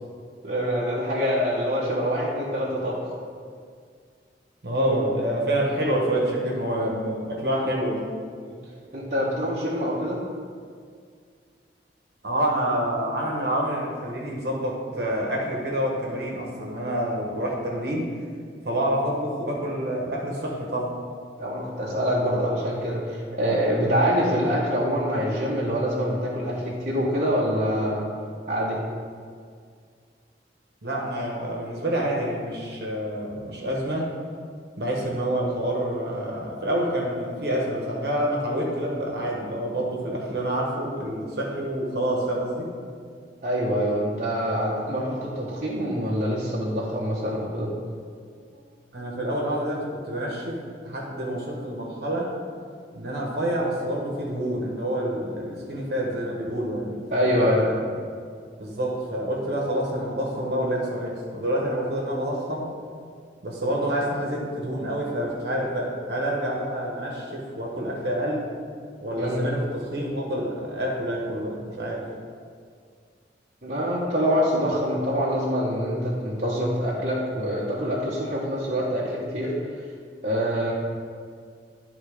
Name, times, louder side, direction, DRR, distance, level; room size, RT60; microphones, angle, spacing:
voice 1, 0.4-3.1 8.4-8.5 8.9-10.2 21.4-28.1 28.5-28.8 43.4-47.7 57.1-57.6 69.2-69.5 73.6-79.6 80.2-80.7, equal, 45° right, -7 dB, 1.1 m, -25 dB
voice 2, 4.6-8.1 12.2-18.0 18.6-20.9 30.8-34.1 34.8-42.7 48.5-48.6 48.9-50.6 50.8-52.3 52.9-57.8 58.6-62.6 63.4-68.4 69.0-72.1, right 1 dB, 65° right, -2 dB, 1.3 m, -27 dB
11.0 x 3.9 x 5.0 m, 2.1 s
head